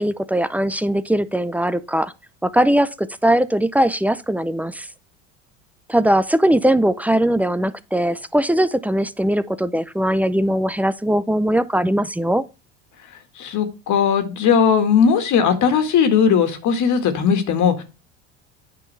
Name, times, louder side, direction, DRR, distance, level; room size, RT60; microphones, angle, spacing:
voice 1, 0.0-2.1 2.4-4.9 5.9-12.4, right 1 dB, 5° right, 0.5 m, -20 dB
voice 2, 13.4-17.8, left 7 dB, 55° left, 1.8 m, -18 dB
9.1 x 5.6 x 3.3 m
supercardioid pair, 95°, 36 cm